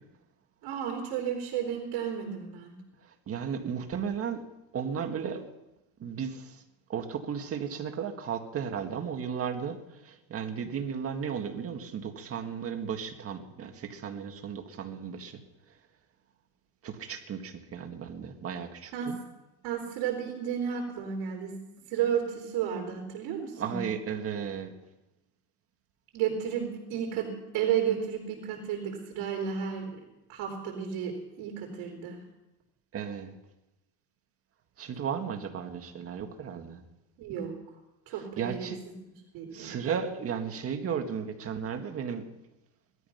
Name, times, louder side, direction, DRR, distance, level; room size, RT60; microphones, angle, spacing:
voice 1, 0.6-2.7 18.9-19.2 19.6-21.6 21.9-23.8 26.1-30.0 30.3-32.2 37.2-37.6 38.1-38.7 39.3-39.8, right 8 dB, 65° right, 0 dB, 3.9 m, -32 dB
voice 2, 3.0-4.5 4.7-5.5 6.0-6.6 6.9-15.4 16.8-19.2 23.6-24.7 32.9-33.4 34.8-36.8 38.1-38.8 39.5-42.3, right 7 dB, 35° right, 5 dB, 1.9 m, -35 dB
18.5 x 13.0 x 5.8 m, 0.96 s
cardioid pair, 140°, 41 cm